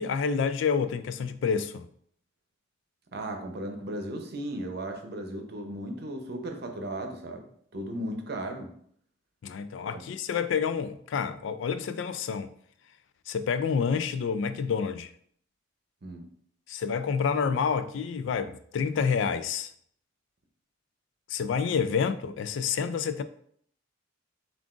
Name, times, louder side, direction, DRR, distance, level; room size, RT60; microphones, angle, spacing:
voice 1, 0.0-1.9 9.4-12.5 13.3-15.1 16.7-19.7 21.3-23.2, left 6 dB, 70° left, 0.3 m, -28 dB
voice 2, 3.1-8.7 9.9-10.0 16.0-16.2, right 1 dB, 55° right, 0.7 m, -36 dB
7.3 x 2.5 x 2.4 m
head